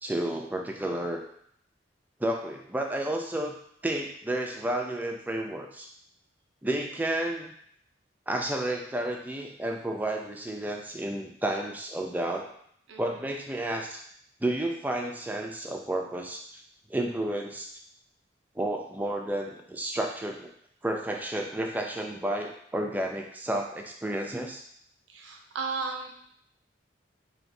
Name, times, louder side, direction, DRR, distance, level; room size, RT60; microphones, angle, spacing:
voice 1, 0.0-1.2 2.2-3.5 3.8-5.9 6.6-7.5 8.3-12.5 13.0-14.0 14.4-16.6 16.9-17.7 18.6-20.5 20.8-24.6, right 1 dB, 10° right, 1 dB, 0.4 m, -31 dB
voice 2, 12.9-13.3 25.1-26.1, right 4 dB, 90° right, 2 dB, 0.5 m, -35 dB
4.5 x 2.8 x 2.6 m, 0.67 s
head